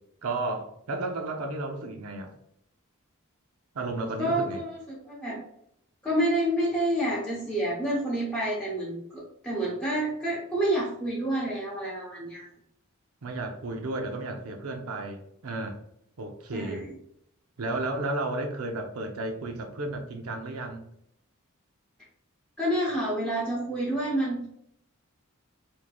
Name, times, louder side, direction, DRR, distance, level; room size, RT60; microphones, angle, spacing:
voice 1, 0.2-2.3 3.7-4.6 13.2-15.8 16.2-16.8 17.6-20.8, right 2 dB, 85° right, 3 dB, 0.6 m, -33 dB
voice 2, 4.2-5.4 6.0-12.5 16.5-16.9 22.6-24.5, right 1 dB, 5° left, -8 dB, 0.8 m, -28 dB
4.5 x 2.8 x 2.3 m, 0.72 s
head